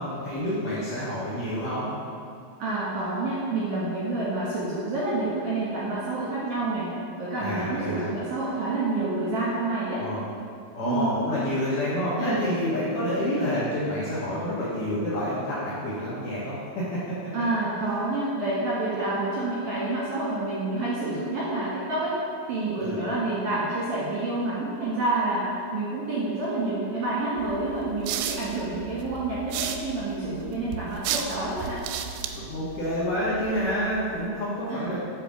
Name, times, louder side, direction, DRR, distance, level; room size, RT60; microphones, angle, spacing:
voice 1, 0.0-1.9 7.4-8.1 10.0-10.2 10.7-17.0 22.8-23.0 32.3-35.0, equal, 65° left, -8 dB, 2.3 m, -28 dB
voice 2, 2.6-6.9 7.2-10.0 10.8-11.1 12.2-12.4 17.3-22.1 22.5-31.8 34.7-34.9, right 2 dB, 60° right, -8 dB, 2.2 m, -28 dB
sound 1, 27.4-34.3, right 8 dB, 80° right, 2.6 m, -35 dB
8.2 x 5.3 x 6.2 m, 2.3 s
omnidirectional pair, 5.3 m